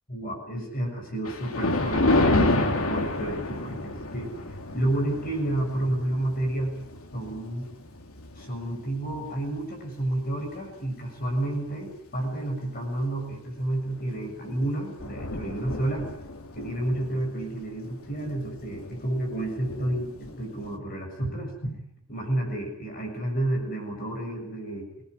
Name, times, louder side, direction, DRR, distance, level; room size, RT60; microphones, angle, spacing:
voice 1, 0.1-4.3 4.7-6.8 7.1-7.7 8.3-16.1 16.5-21.8 22.1-24.9, right 1 dB, 40° left, 2 dB, 7.0 m, -30 dB
Thunder, 1.3-9.8 10.3-10.5 11.2-11.3 11.7-11.8 14.0-14.2 14.5-14.6 14.8-20.8, left 2 dB, 80° left, 2.6 m, -30 dB
25.5 x 19.5 x 9.8 m, 0.74 s
head